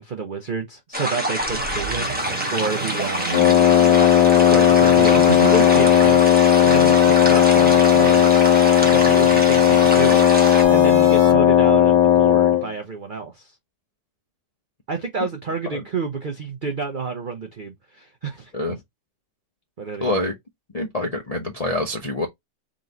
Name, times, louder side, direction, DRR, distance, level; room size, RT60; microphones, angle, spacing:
voice 1, 0.0-2.2 2.5-3.5 4.5-6.2 6.6-8.3 8.8-10.3 10.7-13.5 14.9-18.8 19.8-20.2 21.0-21.1, right 4 dB, 85° right, 0.4 m, -29 dB
sound 1, 0.9-10.6, equal, 10° right, 0.6 m, -27 dB
sound 2, 1.4-11.3, right 5 dB, 45° right, 0.7 m, -33 dB
Wind instrument woodwind instrument, 3.3-12.7, left 10 dB, 85° left, 1.3 m, -15 dB
voice 2, 20.0-20.3 20.7-22.3, left 2 dB, 55° left, 0.4 m, -26 dB
3.8 x 3.0 x 3.8 m
omnidirectional pair, 1.9 m